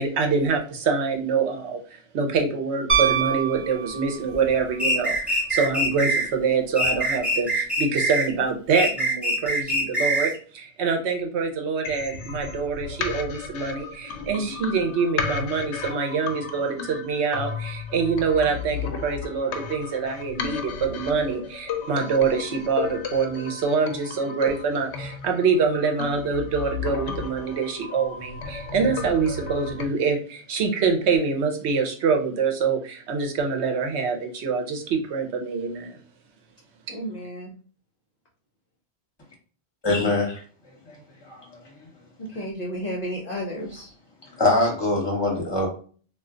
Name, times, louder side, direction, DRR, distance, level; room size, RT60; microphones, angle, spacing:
voice 1, 0.0-36.0, right 5 dB, 75° right, 3 dB, 1.0 m, -25 dB
Piano, 2.9-4.5 6.8-6.9, right 7 dB, 60° right, 0.3 m, -24 dB
sound 1, 4.8-6.3 6.8-8.3 8.7-10.4, right 1 dB, ahead, 1.0 m, -24 dB
sound 2, 11.8-29.8, left 5 dB, 80° left, 0.9 m, -34 dB
voice 2, 36.9-37.5 42.3-43.9, equal, 45° left, -2 dB, 0.6 m, -32 dB
voice 3, 39.8-40.4 40.8-41.0 41.2-41.6 44.3-45.7, left 2 dB, 25° left, -1 dB, 1.1 m, -23 dB
2.4 x 2.2 x 3.7 m, 0.42 s
omnidirectional pair, 1.2 m